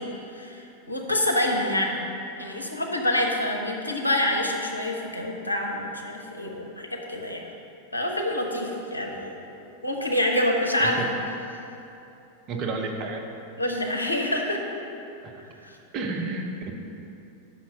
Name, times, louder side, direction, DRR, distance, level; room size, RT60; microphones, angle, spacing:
voice 1, 0.0-2.0 2.4-7.5 7.9-9.4 9.8-11.0 13.6-14.6 15.6-15.8, left 1 dB, 85° left, 0 dB, 0.7 m, -27 dB
voice 2, 12.5-13.2 15.2-15.3 15.9-16.7, right 3 dB, 35° right, 1 dB, 0.8 m, -31 dB
5.8 x 4.5 x 6.2 m, 2.9 s
figure-of-eight pair, 90°, 0 cm